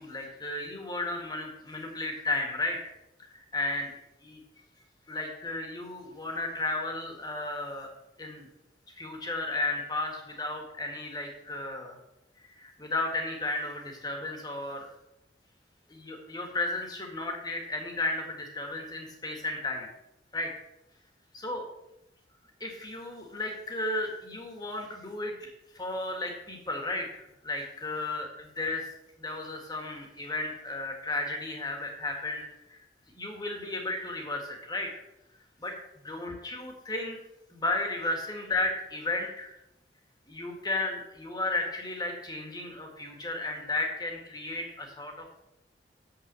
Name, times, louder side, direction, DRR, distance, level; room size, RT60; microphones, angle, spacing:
voice 1, 0.0-2.8 3.3-3.9 4.2-4.4 5.1-7.9 8.2-8.5 9.0-12.0 12.4-14.9 15.9-19.9 20.3-20.5 21.3-21.6 22.6-28.9 29.2-32.8 33.2-34.9 35.6-35.7 36.1-37.2 37.5-39.5 40.3-45.4, left 2 dB, 20° left, 2 dB, 1.8 m, -34 dB
7.4 x 5.9 x 7.6 m, 0.88 s
head